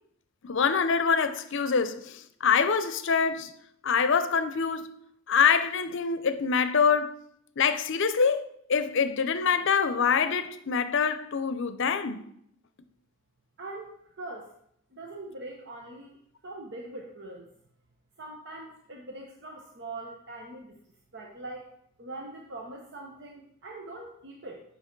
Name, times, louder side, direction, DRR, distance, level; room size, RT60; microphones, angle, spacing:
voice 1, 0.4-3.5 3.8-5.0 5.3-7.2 7.6-12.2, left 6 dB, 65° left, 0.6 m, -25 dB
voice 2, 13.6-14.5 14.9-16.1 16.4-17.5 18.2-20.8 21.1-21.7 22.0-24.6, right 2 dB, 55° right, 0.9 m, -42 dB
8.2 x 5.7 x 4.6 m
head